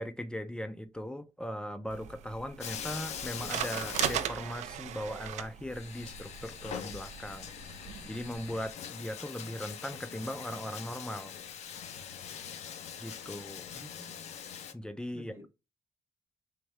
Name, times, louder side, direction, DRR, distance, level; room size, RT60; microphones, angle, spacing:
voice 1, 0.0-7.5 7.8-11.4 13.0-13.7 14.7-15.5, equal, 5° left, 0.3 m, -39 dB
sound 1, 1.9-8.7, right 10 dB, 85° right, 0.4 m, -39 dB
Bathtub (filling or washing), 2.6-4.9 5.2-5.3 5.7-14.7, left 8 dB, 70° left, 0.5 m, -43 dB
voice 2, 13.7-14.3 15.1-15.5, right 1 dB, 20° right, 0.8 m, -51 dB
3.5 x 2.6 x 3.2 m
wide cardioid pair, 160°, 12 cm